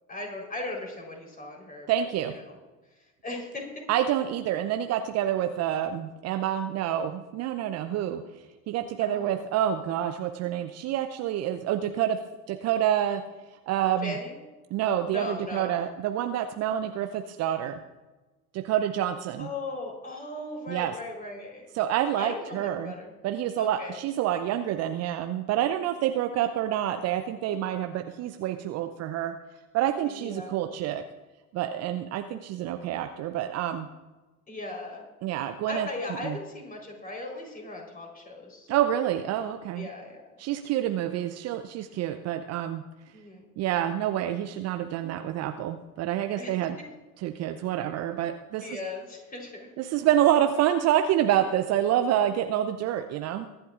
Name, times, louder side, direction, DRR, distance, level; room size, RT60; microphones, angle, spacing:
voice 1, 0.1-2.5 2.9-3.7 9.0-9.4 14.0-14.4 15.1-15.8 19.4-21.7 22.1-23.1 23.6-24.0 30.2-30.6 34.5-35.1 35.7-38.8 39.7-40.2 43.1-43.5 46.4-46.5 48.6-49.7, left 2 dB, 20° left, 0 dB, 4.1 m, -38 dB
voice 2, 1.9-2.3 3.9-8.2 8.7-12.2 12.5-13.2 13.7-14.1 14.7-17.8 18.5-19.5 20.7-20.9 21.7-22.9 23.2-29.3 29.7-31.0 31.5-33.9 35.2-35.9 36.2-36.4 38.7-39.9 40.4-42.8 43.6-46.8 47.2-48.7 49.8-53.5, right 11 dB, 35° right, 8 dB, 0.7 m, -27 dB
23.0 x 11.0 x 2.5 m, 1.2 s
figure-of-eight pair, 75°, 46 cm